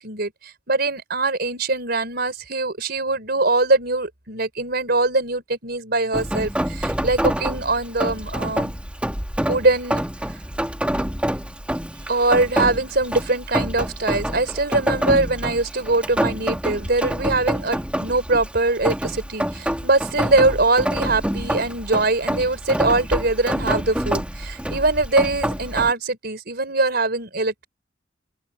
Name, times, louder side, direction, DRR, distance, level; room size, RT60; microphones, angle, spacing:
voice 1, 0.0-8.7 9.5-10.0 12.1-27.7, right 2 dB, 55° right, 4.6 m, -22 dB
Rain, 6.1-25.9, equal, 5° right, 1.9 m, -27 dB
open air
head